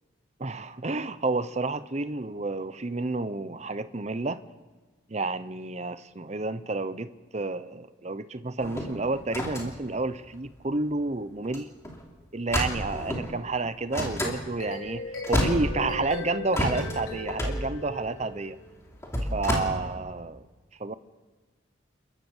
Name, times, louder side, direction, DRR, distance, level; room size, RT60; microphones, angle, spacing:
voice 1, 0.4-4.4 5.1-11.7 12.3-18.6 19.3-20.4 20.8-20.9, right 3 dB, 35° right, 13 dB, 0.7 m, -30 dB
sound 1, 8.6-11.0 11.4-11.6 11.8-12.0 12.5-13.3 13.9-14.4 14.9-15.0 15.2-16.1 16.5-19.6, equal, 15° left, 2.9 m, -30 dB
sound 2, 14.4-18.7, left 2 dB, 80° left, 5.2 m, -37 dB
30.0 x 12.0 x 7.2 m, 1.3 s
head